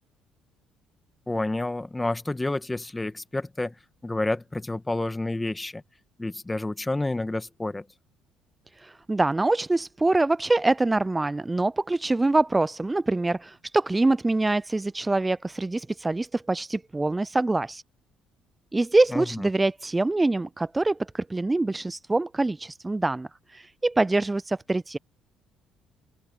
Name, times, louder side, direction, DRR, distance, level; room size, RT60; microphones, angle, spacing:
voice 1, 1.3-3.7 4.0-5.8 6.2-7.8 19.1-19.2, left 2 dB, 15° left, 1.6 m, -29 dB
voice 2, 8.8-17.8 18.7-25.0, right 2 dB, 20° right, 0.4 m, -25 dB
open air
supercardioid pair, 65°, 0 cm